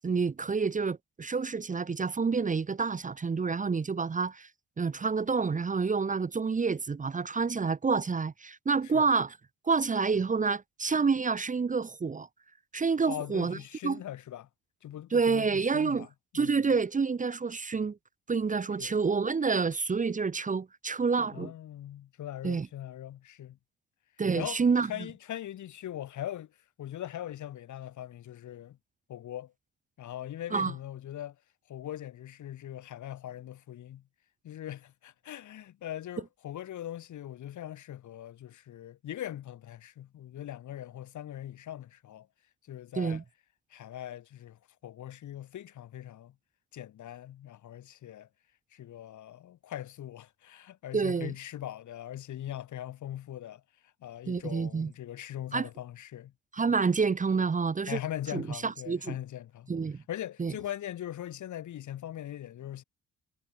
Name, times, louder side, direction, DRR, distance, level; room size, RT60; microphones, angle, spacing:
voice 1, 0.0-4.5 4.8-9.4 9.6-12.3 12.7-13.6 13.8-14.0 15.1-16.1 16.3-18.0 18.3-21.5 22.4-22.7 24.2-24.9 30.5-30.7 43.0-43.2 50.9-51.3 54.3-54.9 55.5-55.7 56.5-58.0 58.3-59.1 59.7-60.0 60.4-60.5, right 5 dB, 25° right, 0.9 m, -28 dB
voice 2, 13.1-14.5 14.8-16.1 16.3-16.6 18.8-19.0 21.3-23.6 24.3-28.8 29.1-29.5 30.0-31.4 31.7-34.0 34.4-42.3 42.6-43.2 43.7-46.4 46.7-48.3 48.7-56.3 57.9-62.8, left 12 dB, 75° left, 5.6 m, -41 dB
cardioid pair, 90°, 30 cm